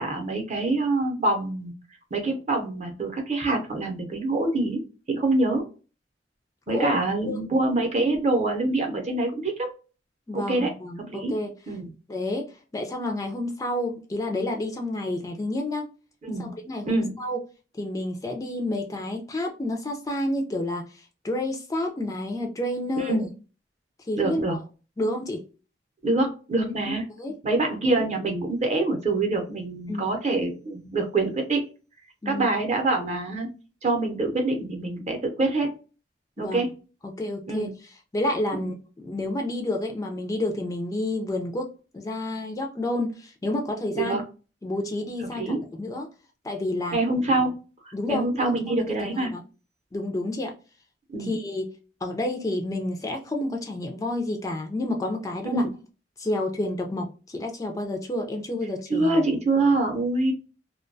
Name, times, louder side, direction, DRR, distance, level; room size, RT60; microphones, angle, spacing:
voice 1, 0.0-1.7 2.1-4.8 5.1-5.6 6.7-9.7 10.3-10.7 11.0-11.3 11.7-11.9 16.3-16.5 16.9-17.1 23.0-23.3 24.2-24.6 26.0-27.0 27.4-31.7 32.3-33.5 33.8-35.7 36.4-36.7 37.5-37.7 38.5-38.7 43.9-44.2 45.3-45.6 46.9-47.5 47.9-49.3 51.1-51.3 55.5-55.7 58.9-60.3, right 2 dB, 40° right, 3 dB, 0.6 m, -25 dB
voice 2, 10.3-11.5 12.1-12.5 12.7-15.9 16.4-17.4 17.8-23.2 24.1-24.6 25.0-25.4 26.9-27.4 29.9-30.1 32.2-32.5 36.4-36.6 37.0-37.7 38.1-44.2 44.6-46.1 46.4-47.0 47.9-48.8 49.0-49.4 49.9-50.5 51.2-51.7 52.0-55.6 56.2-59.2, left 1 dB, 20° left, 3 dB, 0.3 m, -30 dB
2.2 x 2.2 x 2.5 m, 0.34 s
head